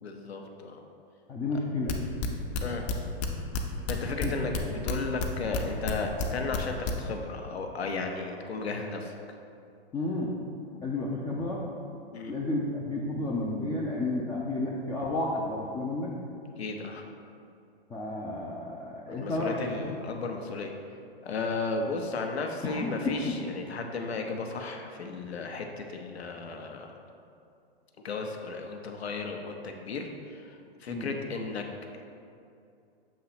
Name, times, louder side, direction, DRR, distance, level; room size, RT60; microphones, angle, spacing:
voice 1, 0.0-0.8 2.6-2.9 3.9-9.1 12.1-12.3 16.6-17.0 19.1-20.7 21.2-27.0 28.0-31.6, left 3 dB, 90° left, 3 dB, 0.8 m, -34 dB
voice 2, 1.3-2.0 4.2-4.3 4.9-5.0 9.9-10.3 10.8-11.6 12.3-16.1 17.9-19.6 20.1-20.3 22.6-23.4 30.9-31.1, left 2 dB, 10° left, -5 dB, 0.3 m, -31 dB
sound 1, 1.9-3.6 3.9-5.6 5.8-6.9, left 5 dB, 45° left, 0.7 m, -30 dB
7.4 x 2.9 x 5.7 m, 2.5 s
hypercardioid pair, 125°, 31 cm